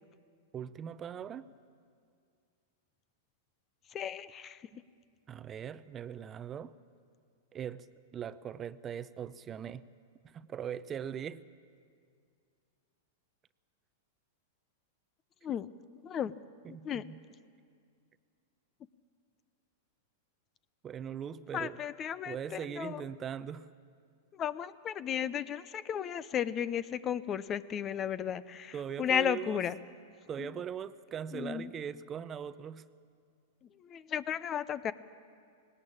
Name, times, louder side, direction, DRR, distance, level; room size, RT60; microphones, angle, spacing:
voice 1, 0.5-1.5 5.3-6.7 7.5-7.9 8.1-9.8 10.2-11.4 16.2-16.3 16.6-17.2 20.8-21.8 22.3-23.7 28.7-29.6 30.3-32.9, right 8 dB, 25° right, 15 dB, 0.6 m, -40 dB
voice 2, 3.9-4.6 15.4-15.7 16.0-16.3 16.8-17.0 21.5-23.0 24.4-29.8 31.3-31.7 33.8-34.9, left 9 dB, 30° left, 17 dB, 0.6 m, -34 dB
19.0 x 18.0 x 8.8 m, 2.2 s
hypercardioid pair, 115°, 0 cm